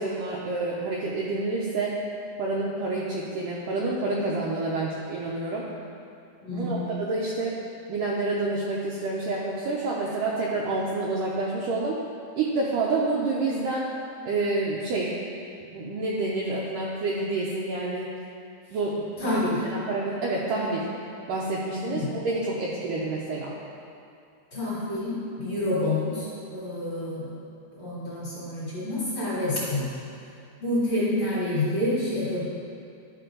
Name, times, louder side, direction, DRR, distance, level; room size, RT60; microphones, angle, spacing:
voice 1, 0.0-2.0 2.4-5.7 6.5-7.6 7.9-12.0 12.4-13.9 14.3-15.1 15.7-18.1 18.7-20.9 21.3-23.5, right 2 dB, 85° right, -4 dB, 1.9 m, -28 dB
voice 2, 6.4-6.9 19.2-19.6 21.9-22.1 24.5-27.3 27.8-29.9 30.6-32.4, left 1 dB, 40° left, -9 dB, 2.3 m, -28 dB
11.5 x 5.2 x 3.8 m, 2.5 s
omnidirectional pair, 4.7 m